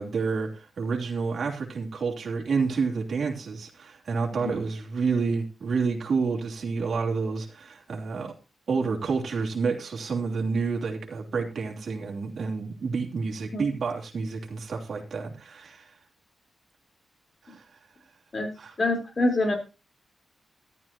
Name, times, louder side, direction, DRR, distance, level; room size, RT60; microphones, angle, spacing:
voice 1, 0.0-8.3 8.7-16.0 17.4-17.8 18.6-18.8, right 4 dB, 65° right, 0 dB, 3.1 m, -29 dB
voice 2, 18.8-19.5, left 2 dB, 45° left, 3 dB, 4.1 m, -25 dB
14.0 x 12.0 x 2.9 m, 0.29 s
cardioid pair, 70°, 0 cm